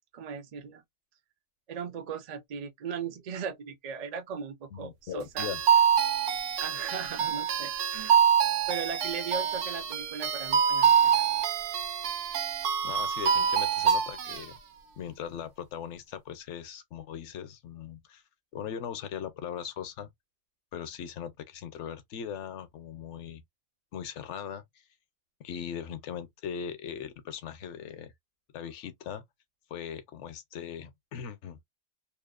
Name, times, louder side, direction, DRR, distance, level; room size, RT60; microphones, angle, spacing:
voice 1, 0.1-0.8 1.7-5.5 6.6-8.2 8.7-11.2, right 6 dB, 60° right, 0.4 m, -38 dB
voice 2, 4.7-5.6 12.8-14.6 15.0-18.2 18.5-20.1 20.7-23.4 23.9-24.6 25.4-28.1 28.5-29.2 29.7-31.6, left 8 dB, 70° left, 0.9 m, -39 dB
sound 1, 5.4-14.4, right 8 dB, 75° right, 0.9 m, -26 dB
2.9 x 2.0 x 2.3 m
omnidirectional pair, 1.3 m